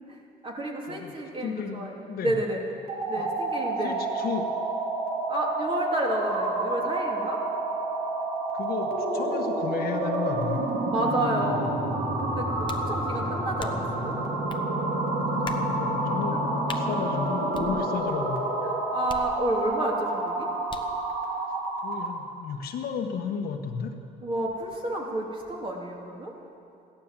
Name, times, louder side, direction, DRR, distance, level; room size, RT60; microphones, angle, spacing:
voice 1, 0.4-2.6 3.1-4.0 5.3-7.4 10.9-14.2 18.7-20.5 24.2-26.3, right 1 dB, 30° right, -1 dB, 3.0 m, -30 dB
voice 2, 1.4-2.3 3.1-3.3 3.8-4.5 8.5-10.7 13.2-13.4 15.3-18.5 21.8-23.9, left 6 dB, 65° left, 4 dB, 1.4 m, -33 dB
sound 1, 2.8-22.2, right 2 dB, 70° right, 2.9 m, -29 dB
sound 2, 12.7-13.0 13.6-14.0 14.5-14.6 15.4-15.7 16.7-16.9 17.5-18.2 19.1-19.8 20.7-21.0, left 5 dB, 30° left, 1.0 m, -41 dB
15.5 x 11.5 x 7.5 m, 2.6 s
cardioid pair, 110°, 17 cm